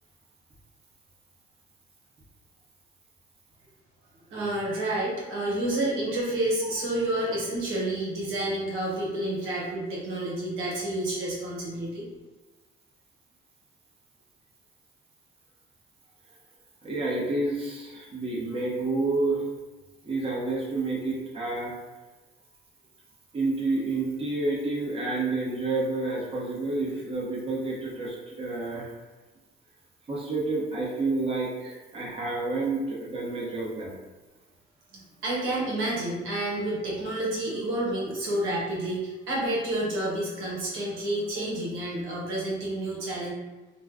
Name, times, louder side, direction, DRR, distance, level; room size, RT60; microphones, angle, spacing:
voice 1, 4.3-12.1 34.9-43.3, right 1 dB, 80° right, -5 dB, 1.0 m, -29 dB
voice 2, 16.8-19.4 20.0-21.7 23.3-28.9 30.1-33.9, right 2 dB, 30° right, -5 dB, 0.9 m, -29 dB
2.5 x 2.2 x 3.4 m, 1.2 s
cardioid pair, 90°, 20 cm